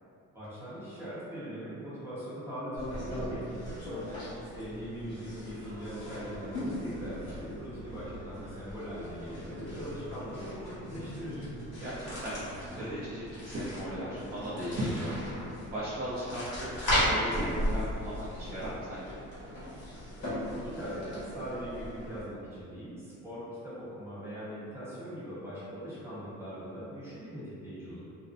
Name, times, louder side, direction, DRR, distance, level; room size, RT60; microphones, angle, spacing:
voice 1, 0.3-3.8 4.5-11.5 20.2-28.0, equal, 10° right, -12 dB, 0.9 m, -41 dB
sound 1, 2.8-22.2, equal, 55° left, 1.1 m, -37 dB
voice 2, 4.1-4.4 11.8-15.1 15.7-19.2, equal, 30° right, -10 dB, 0.4 m, -37 dB
2.5 x 2.1 x 2.4 m, 2.5 s
cardioid pair, 135°, 31 cm